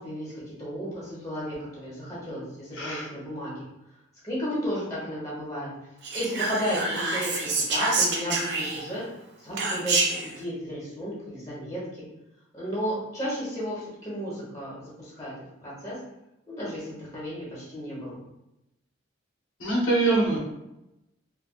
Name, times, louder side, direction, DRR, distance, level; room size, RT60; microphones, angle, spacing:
voice 1, 0.0-3.5 4.2-5.7 6.1-9.0 9.4-12.0 12.5-15.3 15.6-15.9 16.5-18.2, equal, 15° left, -9 dB, 1.1 m, -33 dB
voice 2, 2.7-3.1 19.6-20.4, right 2 dB, 80° left, -3 dB, 0.9 m, -24 dB
Whispering, 6.0-9.0 9.6-10.3, right 3 dB, 55° right, 0.4 m, -27 dB
3.3 x 2.2 x 2.3 m, 0.90 s
head